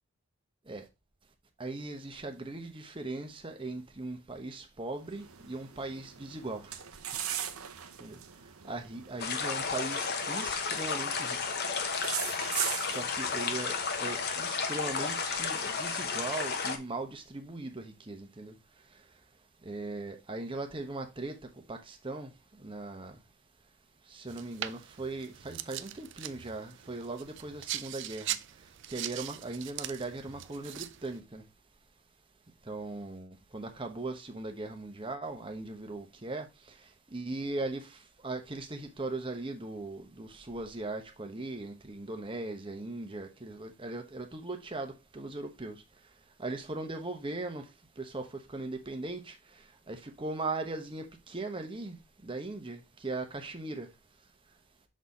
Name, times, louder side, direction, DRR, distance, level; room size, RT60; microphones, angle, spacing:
voice 1, 1.6-6.7 8.0-8.2 8.6-11.6 12.9-18.5 19.6-21.4 21.7-22.3 22.6-23.1 24.1-28.4 28.9-31.4 32.7-36.5 37.1-38.0 38.2-45.8 46.4-47.6 48.0-49.4 49.9-52.0 52.2-53.9, right 2 dB, 25° right, 0.9 m, -39 dB
sound 1, 5.0-16.8, right 10 dB, 80° right, 0.8 m, -41 dB
sound 2, 9.2-16.8, left 5 dB, 50° left, 0.9 m, -33 dB
sound 3, 24.3-31.2, right 13 dB, 55° right, 0.4 m, -41 dB
6.3 x 4.1 x 4.1 m
head